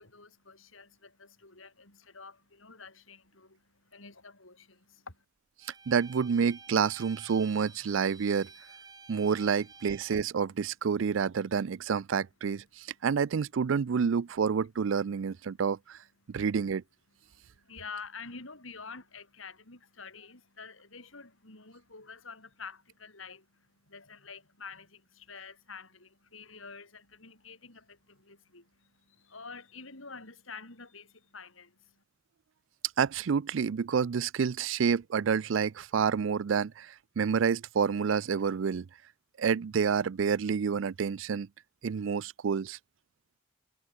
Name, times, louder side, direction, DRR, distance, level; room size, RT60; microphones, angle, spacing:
voice 1, 0.0-5.2 16.2-16.4 17.3-32.0, left 4 dB, 80° left, 6.5 m, -48 dB
Bowed string instrument, 5.6-10.2, right 4 dB, 20° right, 3.9 m, -52 dB
voice 2, 5.9-8.5 9.1-16.0 16.3-16.8 33.0-38.9 39.4-41.5 41.8-42.8, right 6 dB, 70° right, 0.4 m, -28 dB
head